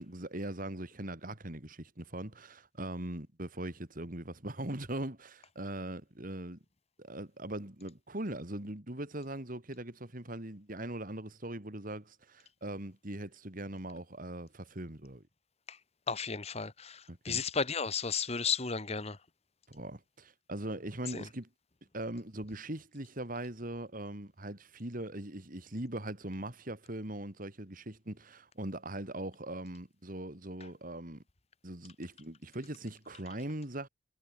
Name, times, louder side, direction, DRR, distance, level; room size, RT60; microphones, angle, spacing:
voice 1, 0.0-6.6 7.0-15.2 17.1-17.4 19.7-21.5 21.9-31.2 31.6-33.9, right 1 dB, 45° right, 2.6 m, -41 dB
voice 2, 16.1-19.2 21.1-21.2, left 5 dB, 30° left, 1.5 m, -34 dB
head